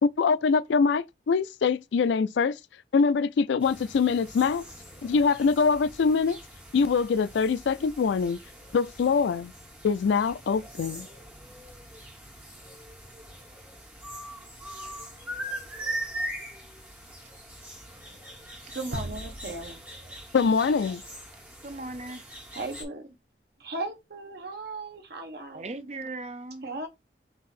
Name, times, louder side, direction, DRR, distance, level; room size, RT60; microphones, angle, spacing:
voice 1, 0.0-2.6 2.9-4.6 5.0-6.4 6.7-8.4 8.7-9.5 9.8-11.1 20.3-21.0, left 5 dB, 80° left, 0.4 m, -24 dB
sound 1, 3.6-22.8, right 1 dB, 10° right, 1.5 m, -42 dB
voice 2, 18.7-19.8 22.5-23.1 23.6-25.7 26.6-26.9, right 2 dB, 60° right, 1.1 m, -36 dB
sound 2, 18.9-21.9, right 1 dB, 85° right, 0.9 m, -41 dB
voice 3, 21.6-22.3 25.5-26.7, right 2 dB, 35° right, 0.5 m, -38 dB
4.7 x 2.7 x 4.1 m
head